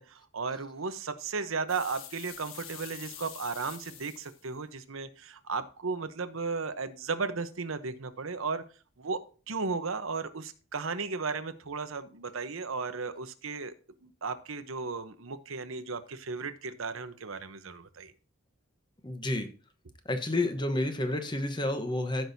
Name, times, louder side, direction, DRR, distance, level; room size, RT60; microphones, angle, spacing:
voice 1, 0.0-8.6 9.0-13.7 14.0-18.1, right 4 dB, 80° right, 11 dB, 0.9 m, -35 dB
sound 1, 1.7-4.4, left 9 dB, 75° left, 1.4 m, -46 dB
voice 2, 19.0-19.5 20.0-22.2, left 1 dB, 20° left, 7 dB, 1.0 m, -30 dB
14.5 x 6.1 x 2.7 m, 0.36 s
head